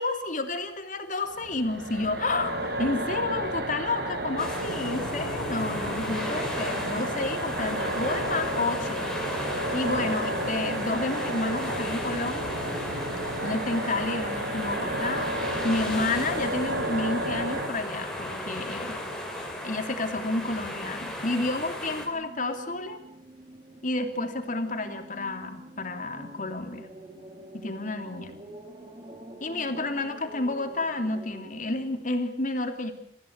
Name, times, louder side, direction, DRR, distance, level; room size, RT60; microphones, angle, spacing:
voice 1, 0.0-9.1 9.7-12.6 13.4-15.3 15.6-19.0 19.6-23.0 23.8-26.9 27.5-28.3 29.4-32.9, left 2 dB, 50° left, 7 dB, 3.0 m, -30 dB
sound 1, 1.3-17.7, right 1 dB, 65° right, 4.0 m, -32 dB
sound 2, 4.4-22.1, left 1 dB, 5° left, 5.4 m, -35 dB
sound 3, 21.6-32.1, right 1 dB, 25° right, 3.2 m, -46 dB
29.0 x 15.5 x 8.1 m, 0.72 s
head